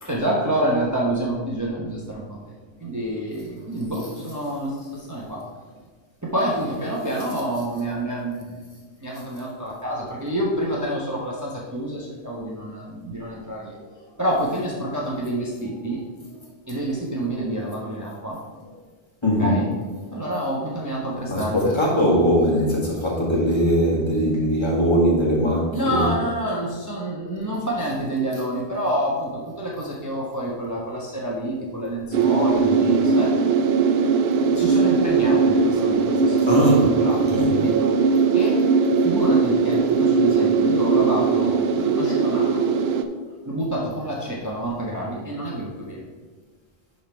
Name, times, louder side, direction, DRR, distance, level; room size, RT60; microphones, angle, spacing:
voice 1, 0.0-2.3 2.8-5.4 6.2-8.6 9.0-13.8 14.2-16.0 16.7-18.4 19.4-19.7 20.1-21.7 25.7-33.3 34.5-36.6 36.9-37.9 38.3-38.6 39.0-42.6 43.5-46.0, right 1 dB, 15° right, -4 dB, 1.0 m, -27 dB
voice 2, 19.2-19.6 21.3-26.1 27.5-27.6 36.5-37.6, equal, 25° left, -5 dB, 2.0 m, -21 dB
sound 1, 32.1-43.0, right 5 dB, 70° right, 0.8 m, -19 dB
10.5 x 3.8 x 4.4 m, 1.4 s
omnidirectional pair, 1.1 m